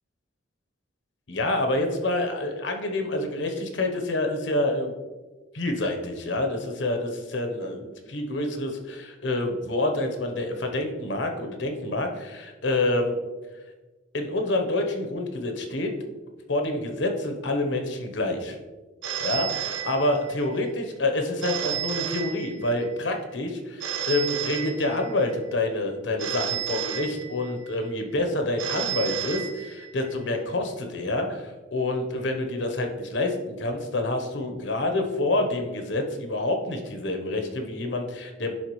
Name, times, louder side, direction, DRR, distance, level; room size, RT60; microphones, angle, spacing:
voice 1, 1.3-4.9 5.5-13.2 14.1-15.9 16.5-18.6 19.2-38.5, left 2 dB, 70° left, 4 dB, 1.0 m, -27 dB
Telephone, 19.0-20.5 21.4-22.9 23.8-25.3 26.2-27.7 28.6-30.1, right 9 dB, 80° right, 0.9 m, -32 dB
11.0 x 3.9 x 3.2 m, 1.2 s
head